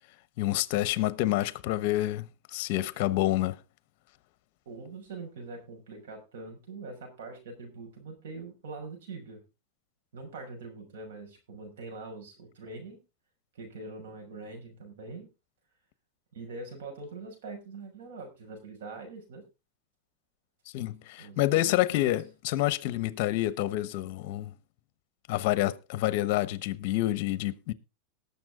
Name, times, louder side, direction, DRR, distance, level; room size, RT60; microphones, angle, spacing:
voice 1, 0.4-3.6 20.7-24.5 25.3-27.7, left 15 dB, 55° left, 1.0 m, -28 dB
voice 2, 4.7-9.4 10.1-13.0 13.5-15.3 16.3-19.4 21.2-22.1, right 3 dB, 85° right, 5.9 m, -43 dB
19.5 x 7.0 x 3.7 m
supercardioid pair, 150°, 0 cm